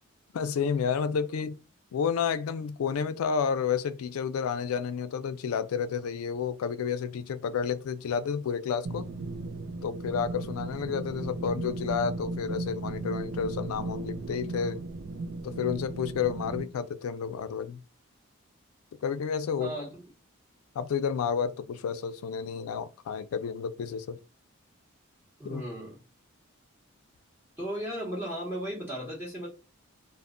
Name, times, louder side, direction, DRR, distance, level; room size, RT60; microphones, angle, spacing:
voice 1, 0.3-1.6 1.9-9.1 9.8-14.8 15.4-17.8 19.0-19.7 20.7-24.2 25.4-25.6, left 6 dB, 85° left, 0.3 m, -30 dB
sound 1, 8.8-16.6, right 2 dB, 50° right, 0.4 m, -36 dB
voice 2, 19.6-19.9 25.4-26.0 27.6-29.5, right 1 dB, 10° right, 0.8 m, -35 dB
2.1 x 2.0 x 3.6 m
head